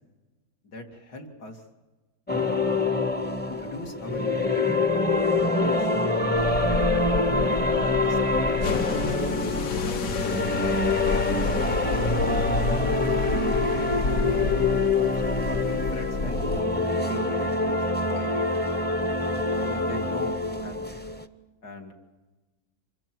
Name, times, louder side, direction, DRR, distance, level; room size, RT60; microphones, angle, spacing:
voice 1, 0.6-1.6 2.3-2.5 3.5-4.5 5.2-5.9 7.9-8.9 9.2-11.8 12.1-12.5 12.9-13.1 15.5-18.6 19.5-20.9 21.6-21.9, left 2 dB, 80° left, 2 dB, 2.9 m, -40 dB
sound 1, 2.3-21.2, left 3 dB, 10° left, 0.6 m, -25 dB
sound 2, 6.3-16.6, left 3 dB, 60° left, 1.5 m, -30 dB
26.0 x 21.5 x 6.1 m, 1.2 s
omnidirectional pair, 1.7 m